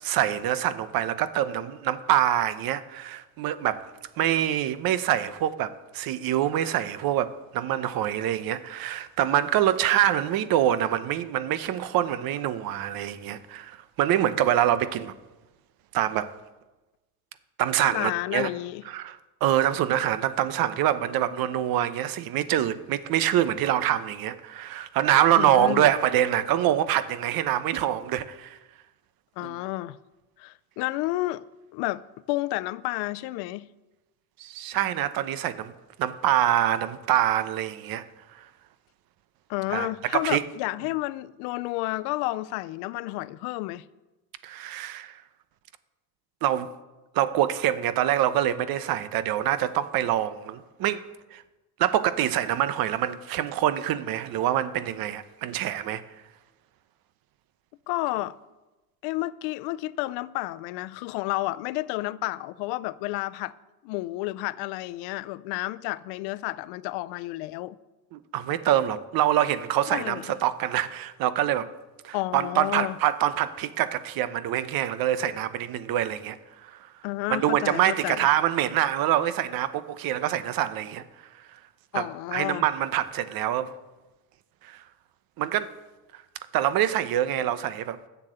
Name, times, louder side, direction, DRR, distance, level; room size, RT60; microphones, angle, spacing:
voice 1, 0.0-3.9 4.2-15.1 15.9-16.3 17.6-18.5 18.9-28.6 29.4-29.6 34.4-35.7 36.0-38.0 39.7-40.4 44.4-45.2 46.4-46.7 47.1-51.0 51.3-51.4 51.8-56.0 68.1-71.7 72.0-76.4 76.6-76.9 77.3-81.0 81.9-83.7 84.6-84.8 85.4-85.7 86.1-86.2 86.5-88.0, right 11 dB, 65° right, 0.9 m, -25 dB
voice 2, 17.8-18.8 25.4-25.9 29.4-30.0 30.4-31.4 31.7-33.7 39.5-43.8 57.9-58.4 59.0-63.5 63.8-67.8 69.9-70.3 72.1-73.0 77.0-78.3 81.9-82.7, left 18 dB, 90° left, 0.6 m, -31 dB
11.0 x 7.1 x 7.9 m
cardioid pair, 115°, 39 cm